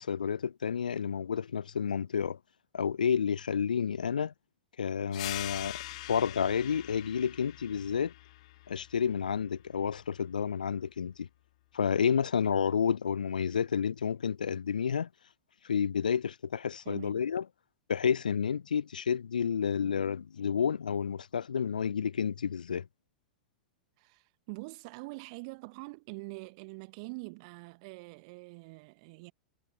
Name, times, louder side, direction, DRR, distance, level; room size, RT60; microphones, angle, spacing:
voice 1, 0.0-2.4 2.7-4.3 4.8-5.8 6.1-8.1 8.7-11.3 11.7-15.1 15.6-17.4 17.9-22.9, left 7 dB, 70° left, 0.6 m, -30 dB
sound 1, 5.1-10.3, left 18 dB, 50° left, 1.7 m, -44 dB
voice 2, 16.8-17.2 24.0-29.3, right 29 dB, 45° right, 1.0 m, -44 dB
figure-of-eight pair, 95°, 5 cm